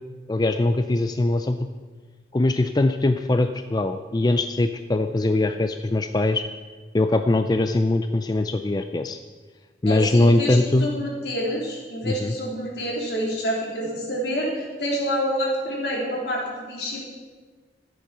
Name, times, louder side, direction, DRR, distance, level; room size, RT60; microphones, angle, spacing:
voice 1, 0.3-1.6 2.3-6.4 6.9-9.2 9.8-10.9 12.0-12.3, left 2 dB, 25° left, 8 dB, 0.4 m, -21 dB
voice 2, 9.9-17.0, equal, 70° left, -3 dB, 3.4 m, -28 dB
14.0 x 8.5 x 5.9 m, 1.4 s
head